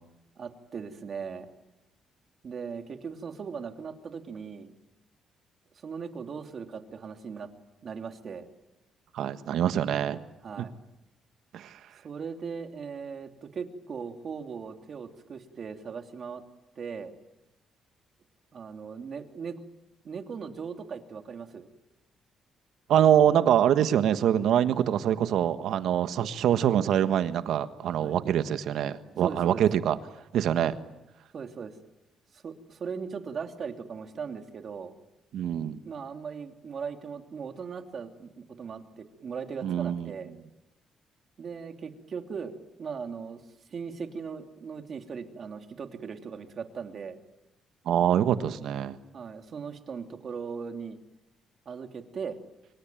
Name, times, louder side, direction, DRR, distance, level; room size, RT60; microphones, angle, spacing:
voice 1, 0.4-1.5 2.4-4.7 5.8-7.5 7.8-8.5 10.4-10.8 12.0-16.4 16.8-17.1 18.5-19.6 20.0-21.7 28.0-28.2 29.2-29.6 31.3-31.8 32.3-34.9 35.8-40.3 41.4-43.4 43.7-47.2 49.1-51.0 51.6-52.4, right 6 dB, 50° right, 6 dB, 2.9 m, -38 dB
voice 2, 9.1-10.2 10.6-10.7 11.5-11.7 22.9-30.0 30.3-30.8 35.3-35.8 39.6-40.1 47.8-49.0, right 10 dB, 75° right, 11 dB, 1.4 m, -24 dB
26.0 x 24.0 x 9.2 m, 0.91 s
cardioid pair, 90°, 0 cm